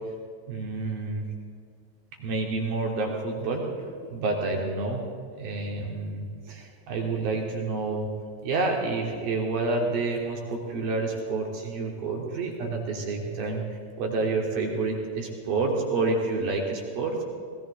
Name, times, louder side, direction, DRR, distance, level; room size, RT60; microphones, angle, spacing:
voice 1, 0.5-1.3 2.2-5.0 5.4-8.1 8.4-17.2, right 3 dB, 45° right, 1 dB, 3.1 m, -29 dB
20.0 x 15.0 x 3.9 m, 2.2 s
figure-of-eight pair, 90°, 0 cm